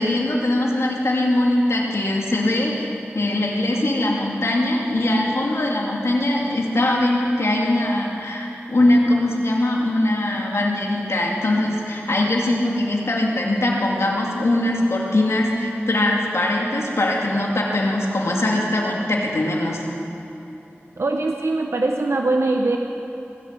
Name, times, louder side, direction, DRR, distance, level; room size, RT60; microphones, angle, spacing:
voice 1, 0.0-19.8, left 1 dB, 80° left, -2 dB, 2.5 m, -21 dB
voice 2, 21.0-22.8, right 2 dB, 75° right, 3 dB, 0.8 m, -21 dB
20.5 x 8.0 x 8.2 m, 3.0 s
wide cardioid pair, 70°, 5 cm